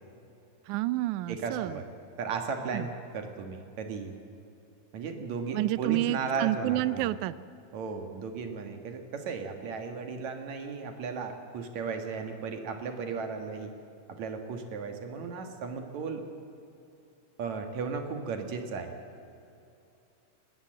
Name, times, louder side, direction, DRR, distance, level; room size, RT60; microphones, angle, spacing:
voice 1, 0.7-1.8 2.7-2.9 5.5-7.3, right 15 dB, 85° right, 17 dB, 2.1 m, -29 dB
voice 2, 1.3-1.9 2.2-4.1 4.9-7.1 7.7-13.7 14.2-16.2 17.4-18.9, right 5 dB, 70° right, 5 dB, 2.9 m, -35 dB
20.5 x 19.0 x 7.7 m, 2.7 s
omnidirectional pair, 3.5 m